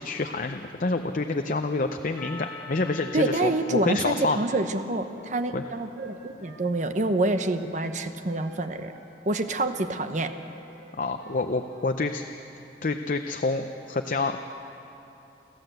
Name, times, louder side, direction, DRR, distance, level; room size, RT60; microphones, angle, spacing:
voice 1, 0.0-4.4 5.5-5.6 11.0-12.2 12.8-14.4, left 3 dB, 50° left, 6 dB, 0.6 m, -28 dB
Percussion, 2.2-6.7, left 4 dB, 10° left, 2.8 m, -47 dB
voice 2, 3.1-8.9 9.2-10.3, right 2 dB, 45° right, 8 dB, 1.0 m, -27 dB
Wind instrument woodwind instrument, 5.0-8.0 8.3-9.9 10.2-10.4 10.7-11.4 11.6-11.9, right 2 dB, 70° right, 3.4 m, -49 dB
29.5 x 11.5 x 7.9 m, 3.0 s
head